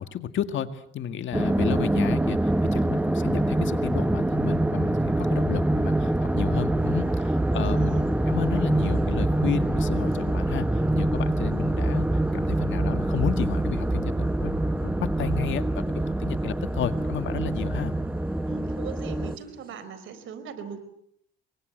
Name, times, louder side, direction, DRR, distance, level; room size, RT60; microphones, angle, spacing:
voice 1, 0.0-8.0 8.3-12.1 12.3-17.9, left 9 dB, 70° left, 10 dB, 1.9 m, -32 dB
sound 1, 1.3-19.4, right 1 dB, 5° right, 1.1 m, -25 dB
sound 2, 6.8-19.8, right 4 dB, 50° right, 4.9 m, -53 dB
voice 2, 7.6-8.1 18.5-20.8, right 7 dB, 80° right, 12 dB, 4.5 m, -39 dB
28.5 x 23.5 x 8.0 m, 0.71 s
cardioid pair, 90°, 20 cm